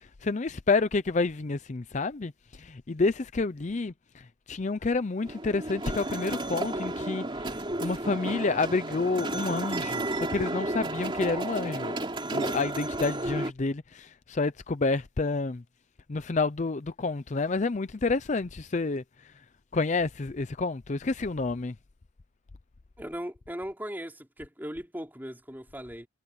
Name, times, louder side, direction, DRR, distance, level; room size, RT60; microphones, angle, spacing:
voice 1, 0.2-2.3 2.6-3.9 4.5-7.2 7.8-12.0 12.3-15.6 16.1-19.0 19.7-21.7, left 3 dB, 40° left, 0.5 m, -29 dB
sound 1, 5.2-13.5, right 2 dB, 25° right, 2.9 m, -32 dB
voice 2, 23.0-26.1, equal, 10° right, 3.8 m, -38 dB
head